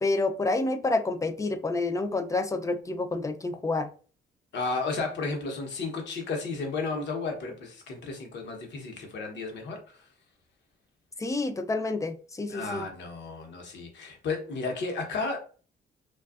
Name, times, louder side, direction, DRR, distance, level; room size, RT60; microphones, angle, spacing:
voice 1, 0.0-3.9 11.2-12.9, left 2 dB, 15° left, 8 dB, 0.3 m, -28 dB
voice 2, 4.5-10.0 12.5-15.4, left 3 dB, 65° left, 3 dB, 0.8 m, -33 dB
2.5 x 2.3 x 2.4 m, 0.39 s
cardioid pair, 90°, 20 cm